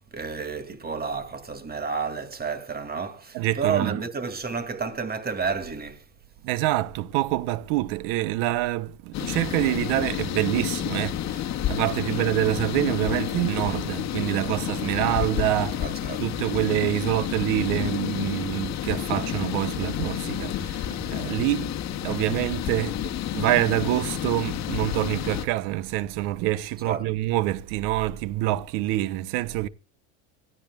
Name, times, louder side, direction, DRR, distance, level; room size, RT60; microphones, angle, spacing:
voice 1, 0.1-6.0 12.1-12.3 15.8-16.2 26.9-27.1, right 5 dB, 25° right, 2.3 m, -31 dB
voice 2, 3.3-4.0 6.4-15.9 16.2-21.7 22.0-29.7, right 16 dB, 65° right, 1.0 m, -26 dB
sound 1, 9.1-25.5, left 11 dB, 45° left, 1.6 m, -30 dB
24.0 x 13.5 x 2.3 m
supercardioid pair, 105°, 39 cm